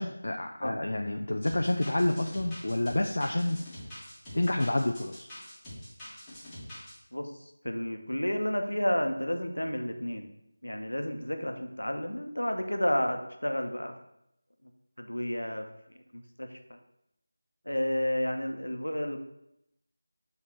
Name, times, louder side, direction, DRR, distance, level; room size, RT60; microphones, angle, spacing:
voice 1, 0.0-3.6 4.3-5.3, left 1 dB, 60° left, 3 dB, 0.5 m, -29 dB
sound 1, 1.5-6.9, equal, 5° left, 1.7 m, -45 dB
voice 2, 7.6-10.3 10.6-13.9 15.0-15.6 16.1-16.8 17.7-19.2, left 1 dB, 80° left, 5 dB, 1.0 m, -31 dB
6.8 x 3.5 x 6.0 m, 0.80 s
figure-of-eight pair, 165°, 0 cm